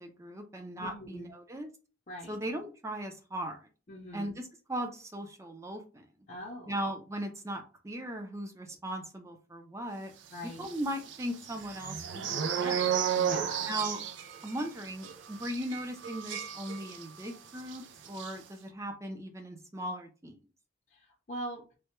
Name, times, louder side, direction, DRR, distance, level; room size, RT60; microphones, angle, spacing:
voice 1, 0.0-1.7 2.3-3.6 4.1-6.0 6.7-10.1 10.4-12.8 13.7-14.0 14.4-20.4, right 1 dB, 15° right, 5 dB, 0.5 m, -38 dB
voice 2, 0.8-1.3 2.1-2.4 3.9-4.3 6.3-6.8 10.3-10.7 13.1-13.7 20.9-21.6, equal, 40° left, -2 dB, 0.6 m, -42 dB
sound 1, 10.6-17.3 17.6-17.8 18.0-18.3, right 8 dB, 75° right, 0.4 m, -33 dB
3.2 x 2.2 x 3.0 m, 0.34 s
head